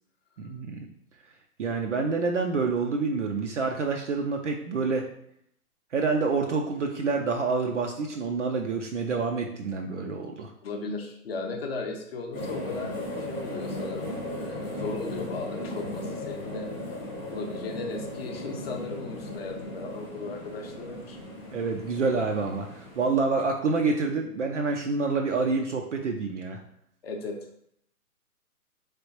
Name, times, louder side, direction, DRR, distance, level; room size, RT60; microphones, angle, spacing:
voice 1, 0.4-0.9 1.6-5.1 5.9-10.5 21.5-26.6, right 4 dB, 55° right, 2 dB, 0.5 m, -27 dB
voice 2, 10.6-16.7 17.3-21.2 27.0-27.4, left 3 dB, 40° left, 3 dB, 0.7 m, -36 dB
sound 1, 12.3-23.1, left 1 dB, 5° left, 0.5 m, -36 dB
3.6 x 3.3 x 2.8 m, 0.71 s
figure-of-eight pair, 135°, 46 cm